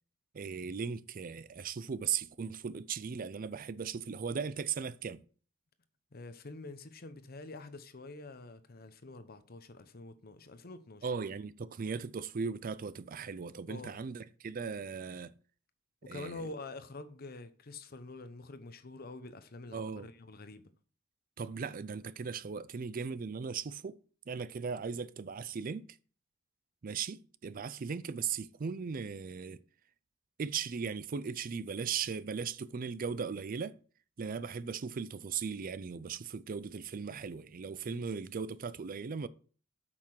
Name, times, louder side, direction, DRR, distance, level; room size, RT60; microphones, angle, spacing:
voice 1, 0.3-5.2 11.0-15.3 16.1-16.4 19.7-20.1 21.4-24.0 24.3-25.9 26.8-29.6 30.4-33.7 34.2-39.3, right 6 dB, 45° right, 0.4 m, -38 dB
voice 2, 6.1-11.1 13.7-14.0 16.0-20.7, left 2 dB, 50° left, 0.8 m, -46 dB
8.6 x 5.9 x 4.7 m
head